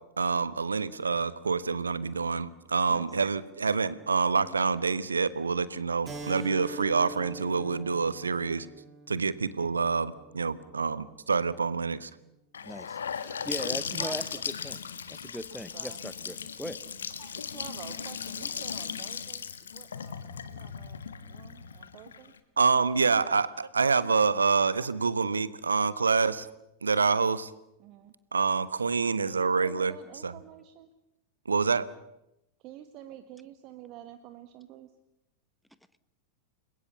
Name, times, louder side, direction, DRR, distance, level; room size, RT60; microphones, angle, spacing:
voice 1, 0.2-8.7 9.1-12.1 22.6-26.5 26.8-27.5 28.3-29.9 30.2-30.3 31.4-31.9, right 5 dB, 75° right, 17 dB, 1.2 m, -27 dB
Keyboard (musical), 6.1-11.2, right 3 dB, 15° right, 7.6 m, -44 dB
Gurgling / Sink (filling or washing) / Bathtub (filling or washing), 12.5-22.4, left 7 dB, 70° left, 1.6 m, -37 dB
voice 2, 12.6-14.2 14.6-14.8 15.1-16.8, equal, ahead, 15 dB, 1.0 m, -39 dB
voice 3, 14.0-14.5 15.7-16.0 17.2-22.3 27.8-28.1 29.3-30.9 32.6-35.0, right 11 dB, 40° right, 9 dB, 1.6 m, -48 dB
29.5 x 22.0 x 7.1 m, 0.87 s
figure-of-eight pair, 90°, 0 cm